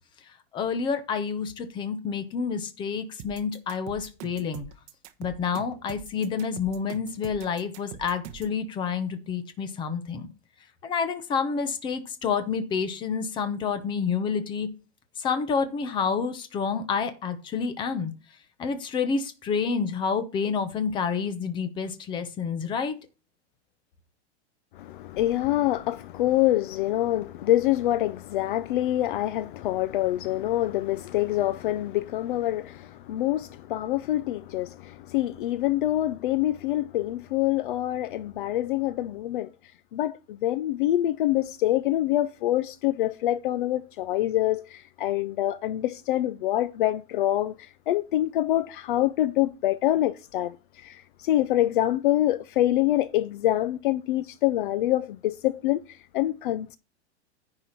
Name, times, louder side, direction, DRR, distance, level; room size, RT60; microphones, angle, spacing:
voice 1, 0.5-4.7 5.2-10.3 10.8-14.7 15.2-18.1 18.6-22.9, left 6 dB, 15° left, 0.8 m, -29 dB
sound 1, 3.2-8.6, right 10 dB, 35° right, 1.1 m, -43 dB
voice 2, 24.8-39.5 39.9-56.8, left 14 dB, 50° left, 0.5 m, -26 dB
10.0 x 4.9 x 5.6 m
supercardioid pair, 175°, 34 cm